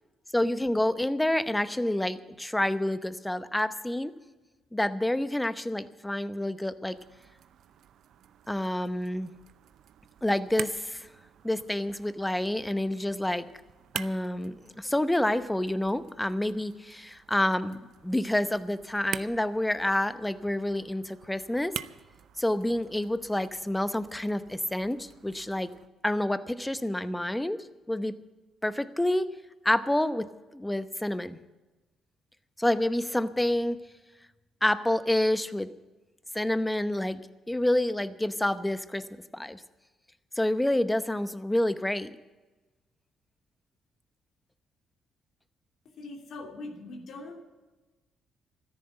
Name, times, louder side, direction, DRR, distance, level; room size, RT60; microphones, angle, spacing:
voice 1, 0.3-4.1 4.7-7.0 8.5-9.3 10.2-11.1 11.4-13.5 13.9-21.7 22.4-25.7 26.0-28.1 28.6-29.2 29.6-30.3 30.5-31.4 32.6-33.8 34.6-35.7 36.3-37.2 37.5-39.0 39.3-39.6 40.4-42.2, left 1 dB, 10° left, 12 dB, 0.8 m, -28 dB
sound 1, 6.9-25.9, right 10 dB, 75° right, 0.5 m, -46 dB
voice 2, 45.8-47.4, left 2 dB, 65° left, 2 dB, 2.7 m, -42 dB
13.5 x 10.5 x 7.9 m, 1.2 s
cardioid pair, 90°, 0 cm